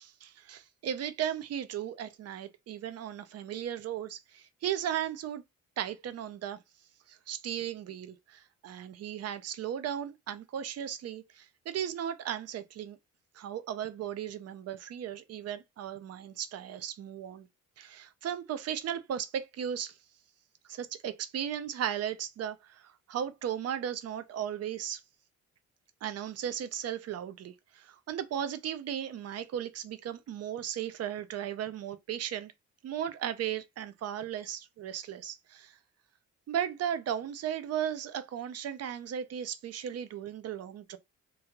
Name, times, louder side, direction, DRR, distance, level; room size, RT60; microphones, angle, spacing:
voice 1, 0.0-5.4 5.8-6.6 7.1-13.0 13.3-17.5 17.8-20.0 20.7-25.0 26.0-32.5 32.8-35.8 36.5-41.0, right 9 dB, 55° right, 0.6 m, -36 dB
3.0 x 2.4 x 2.9 m
cardioid pair, 90°, 30 cm